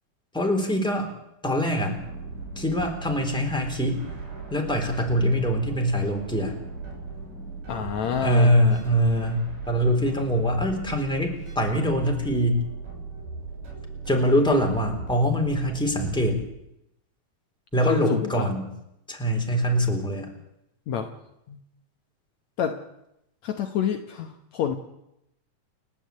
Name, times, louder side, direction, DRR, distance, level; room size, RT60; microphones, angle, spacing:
voice 1, 0.3-1.1 1.4-2.0 2.6-4.0 4.5-6.5 8.2-12.6 14.1-16.4 17.7-18.7 19.1-20.3, equal, ahead, 1 dB, 3.5 m, -23 dB
sound 1, 2.0-16.4, right 4 dB, 85° right, 7.8 m, -38 dB
voice 2, 7.7-8.5 17.8-18.5 20.9-21.1 21.5-21.6 22.6-22.8 23.4-24.8, left 8 dB, 65° left, 5 dB, 2.2 m, -27 dB
30.0 x 10.0 x 8.6 m, 0.85 s
omnidirectional pair, 3.7 m